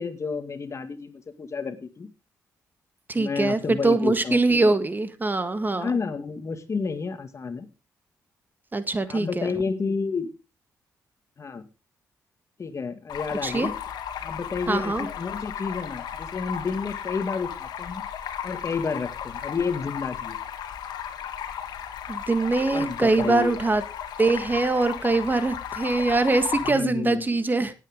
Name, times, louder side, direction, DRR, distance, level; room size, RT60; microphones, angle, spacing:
voice 1, 0.0-2.1 3.1-4.7 5.7-7.7 9.1-10.3 11.4-11.6 12.6-13.8 14.2-18.0 18.4-20.4 22.7-23.6 26.7-27.4, left 5 dB, 45° left, 2.0 m, -30 dB
voice 2, 3.1-5.9 8.7-9.5 13.4-13.7 14.7-15.1 22.1-23.8 24.2-27.7, right 3 dB, 25° right, 1.8 m, -23 dB
Stream, 13.1-26.7, left 9 dB, 80° left, 1.7 m, -35 dB
18.5 x 8.6 x 3.7 m
supercardioid pair, 65°, 7 cm